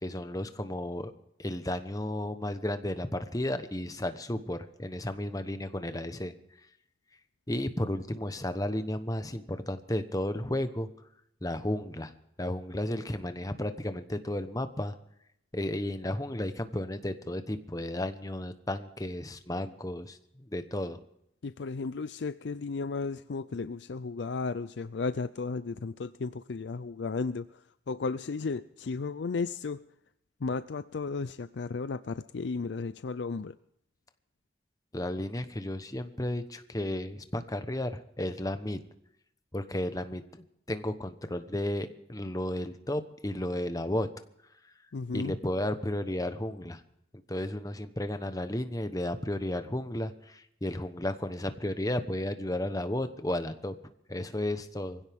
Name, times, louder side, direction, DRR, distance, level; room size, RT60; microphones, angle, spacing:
voice 1, 0.0-1.1 1.4-6.3 7.5-10.9 11.4-12.1 12.4-14.9 15.5-21.0 34.9-38.8 39.5-44.1 45.1-46.8 47.3-53.7 54.1-55.0, left 1 dB, 20° left, 9 dB, 1.1 m, -33 dB
voice 2, 21.4-29.9 30.4-33.6 44.9-45.4, left 4 dB, 75° left, 13 dB, 0.5 m, -34 dB
23.0 x 16.0 x 3.6 m, 0.76 s
head